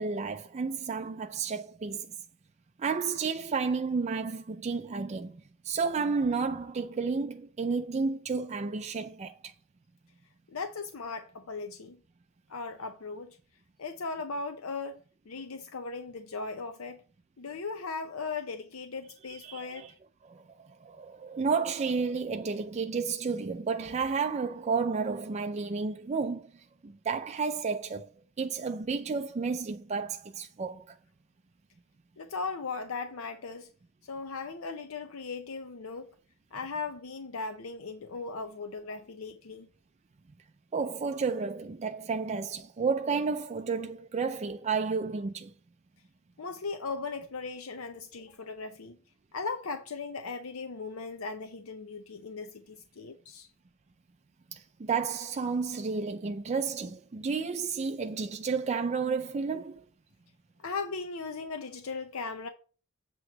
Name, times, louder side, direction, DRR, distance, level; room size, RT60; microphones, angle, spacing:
voice 1, 0.0-2.1 2.8-9.5 19.4-19.9 20.3-26.5 26.8-28.1 28.4-31.0 40.7-45.5 54.5-59.8, right 5 dB, 30° right, 0.4 m, -31 dB
voice 2, 10.5-12.0 12.5-13.4 13.8-15.0 15.3-17.0 17.4-19.9 32.2-33.7 34.0-36.1 36.5-39.7 46.4-49.0 49.3-53.5 60.6-62.5, left 4 dB, 75° left, 0.6 m, -38 dB
7.8 x 3.0 x 6.3 m
head